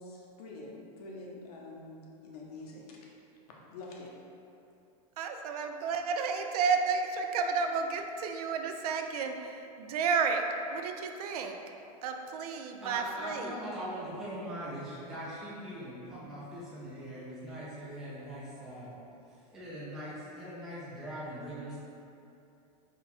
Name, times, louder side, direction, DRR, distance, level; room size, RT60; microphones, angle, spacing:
voice 1, 0.0-3.0 3.5-4.1, left 2 dB, 80° left, -2 dB, 0.8 m, -46 dB
voice 2, 5.2-10.4 10.7-11.6 12.0-13.6, right 5 dB, 80° right, 5 dB, 0.4 m, -32 dB
voice 3, 12.8-19.0 19.3-21.8, equal, ahead, -9 dB, 0.3 m, -41 dB
3.8 x 2.3 x 4.2 m, 2.7 s
supercardioid pair, 170°, 19 cm